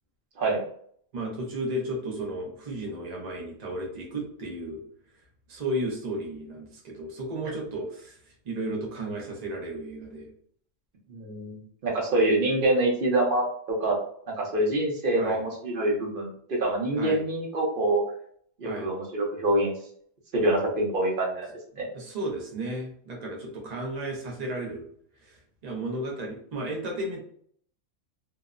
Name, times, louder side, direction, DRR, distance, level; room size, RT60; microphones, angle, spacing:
voice 1, 1.1-4.8 5.5-8.2 8.5-10.3 15.2-15.4 17.0-17.2 18.6-18.9 21.9-24.8 25.2-27.2, right 1 dB, 85° right, -1 dB, 0.3 m, -33 dB
voice 2, 11.1-14.0 14.4-18.0 18.6-19.7 20.3-21.5 21.8-21.9, right 1 dB, 50° right, -2 dB, 0.7 m, -25 dB
2.8 x 2.0 x 2.4 m, 0.62 s
omnidirectional pair, 1.5 m